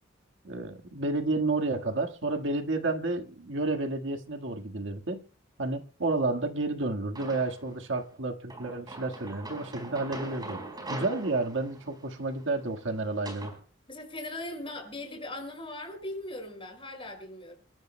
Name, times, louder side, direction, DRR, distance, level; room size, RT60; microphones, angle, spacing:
voice 1, 0.4-5.2 5.6-10.6 10.9-13.5, right 2 dB, 70° right, 1.7 m, -31 dB
sound 1, 7.2-7.8 8.5-13.6, right 2 dB, 20° right, 4.6 m, -42 dB
voice 2, 13.9-17.5, left 1 dB, 30° left, 5.4 m, -39 dB
27.5 x 13.0 x 2.2 m
head